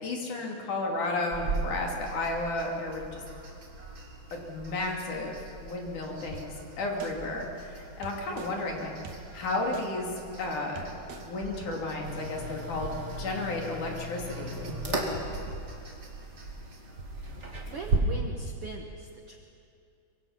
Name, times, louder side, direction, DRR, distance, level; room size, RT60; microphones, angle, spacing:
voice 1, 0.0-3.2 4.3-8.9 9.3-10.1 10.4-15.2, left 2 dB, 60° left, 0 dB, 4.1 m, -33 dB
sound 1, 1.3-18.0, right 3 dB, 40° right, 3.7 m, -39 dB
sound 2, 6.3-6.4 7.0-7.1 8.0-8.5 9.0-9.2 9.7-9.8 10.4-10.5 10.8-11.2 11.6-11.7, right 7 dB, 85° right, 3.4 m, -43 dB
sound 3, 12.0-18.0, equal, 25° right, 1.9 m, -39 dB
voice 2, 17.7-19.4, right 4 dB, 60° right, 2 dB, 1.5 m, -40 dB
24.0 x 23.5 x 5.9 m, 2.5 s
omnidirectional pair, 4.2 m